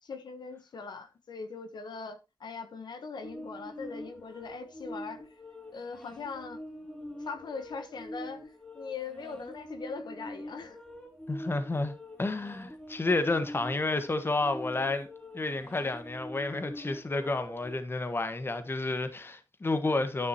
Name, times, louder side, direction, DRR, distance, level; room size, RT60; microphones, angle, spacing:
voice 1, 0.0-5.2 5.7-6.6 7.2-8.4 8.7-10.8, left 5 dB, 75° left, 1.0 m, -41 dB
sound 1, 3.2-17.7, equal, 10° left, 2.9 m, -45 dB
voice 2, 11.3-11.9 12.2-15.1 15.3-20.3, left 2 dB, 30° left, 1.4 m, -30 dB
10.5 x 9.8 x 2.9 m
wide cardioid pair, 110°, 7 cm